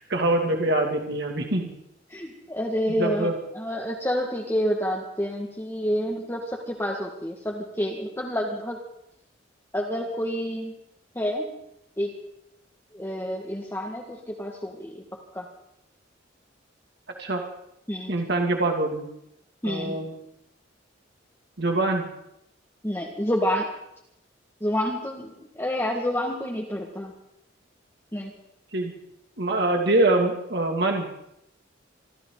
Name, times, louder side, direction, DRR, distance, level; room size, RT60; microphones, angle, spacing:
voice 1, 0.1-1.7 3.0-3.3 17.2-17.4 18.1-19.1 19.6-20.1 21.6-22.0 28.7-28.9 29.4-31.1, right 2 dB, 60° right, 2 dB, 2.3 m, -24 dB
voice 2, 2.1-8.8 9.7-10.8 11.2-11.5 12.0-12.1 12.9-15.0 15.3-15.5 17.9-18.1 19.6-20.0 22.8-23.7 24.6-27.1 28.1-28.3, equal, 10° left, -1 dB, 1.8 m, -28 dB
25.5 x 14.5 x 3.9 m, 0.80 s
head